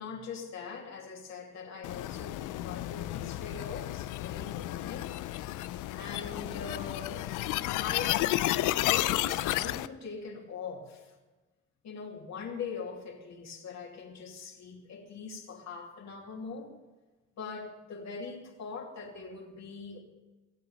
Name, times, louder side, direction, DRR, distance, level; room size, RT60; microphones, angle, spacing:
voice 1, 0.0-5.1 5.9-7.3 7.8-8.2 8.8-11.1 11.8-16.7 17.4-20.0, left 5 dB, 65° left, 0 dB, 2.8 m, -42 dB
sound 1, 1.8-9.9, left 15 dB, 90° left, 0.5 m, -32 dB
18.0 x 8.0 x 7.0 m, 1.2 s
cardioid pair, 90°, 30 cm